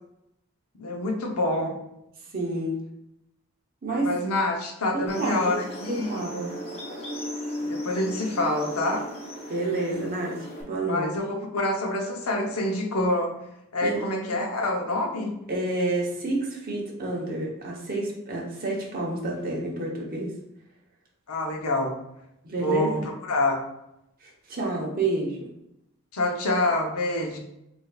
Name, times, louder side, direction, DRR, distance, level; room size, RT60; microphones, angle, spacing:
voice 1, 0.8-1.8 4.0-6.2 7.7-9.0 10.9-11.2 11.5-13.3 13.7-15.3 21.3-22.0 22.6-23.0 23.3-23.6 26.1-27.4, left 1 dB, 80° left, 1 dB, 0.9 m, -26 dB
voice 2, 2.3-2.8 3.8-4.2 4.9-5.6 5.9-6.6 9.5-11.1 13.8-14.1 15.5-20.4 22.4-22.9 24.2-25.5, right 2 dB, 40° right, -2 dB, 1.0 m, -29 dB
sound 1, 5.1-10.6, equal, 30° left, 0.9 m, -36 dB
6.3 x 2.7 x 2.4 m, 0.83 s
head